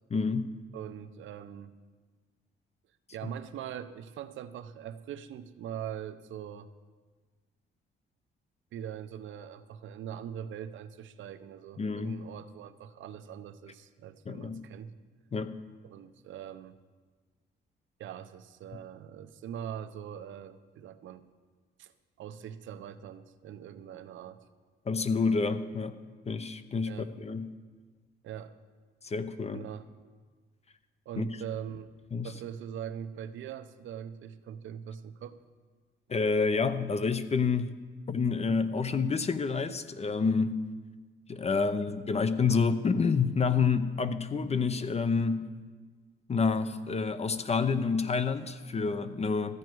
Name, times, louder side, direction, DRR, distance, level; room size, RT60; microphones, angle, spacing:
voice 1, 0.1-0.5 11.8-12.2 14.3-14.6 15.3-15.6 24.9-26.0 26.3-27.5 29.0-29.6 31.2-31.3 32.1-32.3 36.1-37.7 38.1-40.6 41.3-45.5 46.3-49.6, left 5 dB, 30° left, 11 dB, 0.7 m, -28 dB
voice 2, 0.7-1.8 3.1-6.7 8.7-14.9 15.8-16.8 18.0-21.2 21.8-21.9 22.2-24.4 26.8-27.1 28.2-28.6 29.5-29.9 31.1-31.9 32.2-35.4, right 9 dB, 75° right, 12 dB, 0.7 m, -42 dB
14.0 x 9.2 x 4.6 m, 1.5 s
cardioid pair, 90°, 20 cm